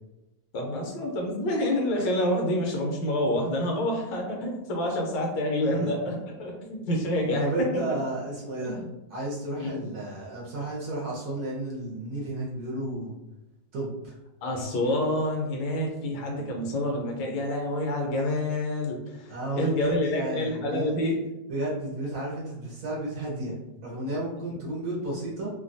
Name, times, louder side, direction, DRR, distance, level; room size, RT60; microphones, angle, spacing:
voice 1, 0.5-8.0 8.6-8.9 9.6-9.8 14.4-21.2, left 1 dB, 75° left, 0 dB, 1.2 m, -28 dB
voice 2, 7.4-8.8 9.1-13.1 13.7-14.1 19.3-20.9 21.5-23.6 23.8-25.5, right 1 dB, 65° right, -5 dB, 1.0 m, -32 dB
3.1 x 2.2 x 2.5 m, 0.98 s
omnidirectional pair, 2.1 m